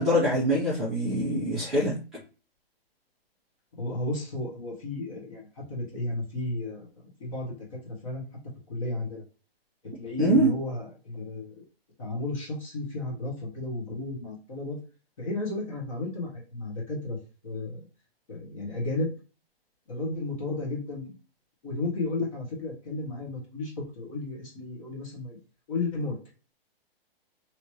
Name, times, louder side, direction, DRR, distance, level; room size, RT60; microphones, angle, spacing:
voice 1, 0.0-2.0 10.2-10.5, equal, ahead, -15 dB, 0.7 m, -24 dB
voice 2, 3.8-8.2 8.7-9.2 9.8-11.6 12.0-14.8 15.2-17.2 17.4-17.9 18.3-19.1 19.9-21.1 21.6-25.4 25.7-26.2, left 2 dB, 35° left, -3 dB, 1.3 m, -33 dB
3.0 x 2.9 x 3.0 m, 0.35 s
hypercardioid pair, 170°, 30 cm